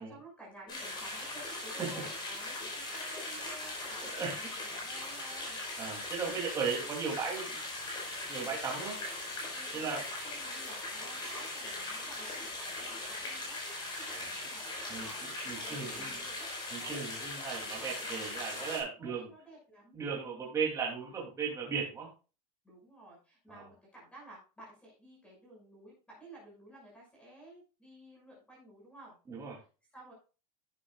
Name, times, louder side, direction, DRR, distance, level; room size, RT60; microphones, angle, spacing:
voice 1, 0.0-5.6 9.5-9.9 10.2-13.6 14.3-15.4 15.6-16.5 19.0-20.0 22.6-29.2 29.9-30.1, right 1 dB, 5° left, -3 dB, 6.1 m, -53 dB
sound 1, 0.7-18.8, left 2 dB, 20° left, 4.9 m, -40 dB
voice 2, 4.0-4.4 5.8-7.6 8.3-9.0 9.7-10.0 14.1-14.3 14.9-16.2 16.7-19.3 19.9-22.1 23.5-23.6 29.3-29.6, right 5 dB, 15° right, -3 dB, 2.9 m, -36 dB
11.5 x 10.0 x 2.4 m, 0.33 s
supercardioid pair, 175°, 21 cm